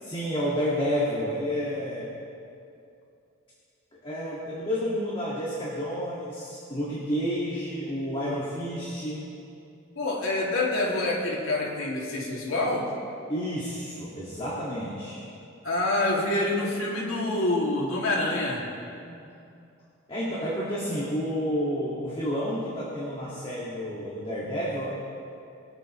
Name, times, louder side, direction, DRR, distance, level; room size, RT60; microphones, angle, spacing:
voice 1, 0.0-2.1 4.0-9.3 13.3-15.2 19.0-19.4 20.1-24.9, equal, 25° left, -7 dB, 2.0 m, -30 dB
voice 2, 10.0-12.9 15.6-18.7, left 2 dB, 85° left, -4 dB, 2.4 m, -26 dB
23.5 x 8.1 x 3.1 m, 2.6 s
head